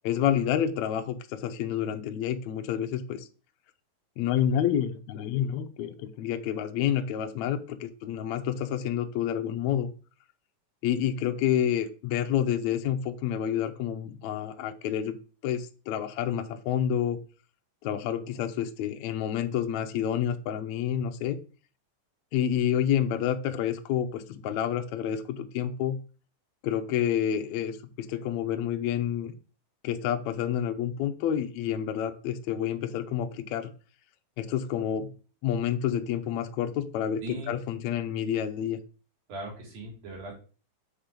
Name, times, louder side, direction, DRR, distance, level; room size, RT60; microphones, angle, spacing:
voice 1, 0.0-3.3 4.2-9.9 10.8-15.2 15.4-17.2 17.8-21.4 22.3-26.0 26.6-29.3 29.8-33.7 34.4-35.1 35.4-38.8, left 9 dB, 90° left, 7 dB, 1.5 m, -29 dB
voice 2, 37.2-37.6 39.3-40.4, right 1 dB, 80° right, -1 dB, 4.5 m, -39 dB
7.4 x 4.4 x 5.2 m, 0.36 s
omnidirectional pair, 4.1 m